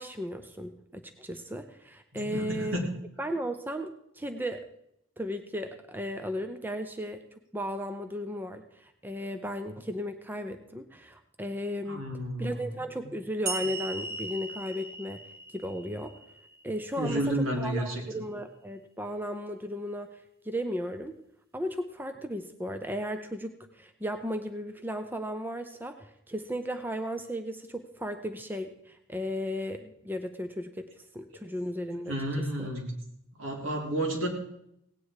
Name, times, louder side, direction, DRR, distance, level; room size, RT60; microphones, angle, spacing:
voice 1, 0.0-2.8 3.2-4.6 5.2-7.2 7.5-12.1 12.4-15.2 15.5-16.1 16.6-21.1 21.5-30.9 31.1-32.7, equal, 10° right, 7 dB, 0.6 m, -35 dB
voice 2, 2.1-2.8 11.9-12.6 17.0-18.0 32.1-32.9 33.4-34.3, right 1 dB, 75° right, 0 dB, 3.2 m, -31 dB
sound 1, 13.5-16.8, right 3 dB, 50° right, 1.5 m, -38 dB
17.5 x 9.2 x 4.8 m, 0.76 s
head